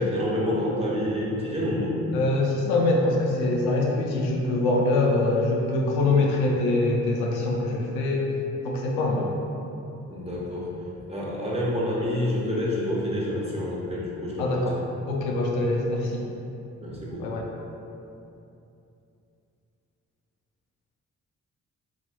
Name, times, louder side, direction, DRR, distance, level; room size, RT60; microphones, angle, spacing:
voice 1, 0.0-2.0 10.1-10.7 11.1-14.6 16.8-17.3, left 1 dB, 15° right, -5 dB, 1.0 m, -28 dB
voice 2, 2.1-8.3 8.6-9.3 14.4-14.8 15.1-16.2 17.2-17.5, left 2 dB, 80° left, -1 dB, 0.5 m, -24 dB
4.1 x 3.0 x 2.3 m, 2.7 s
hypercardioid pair, 40°, 37 cm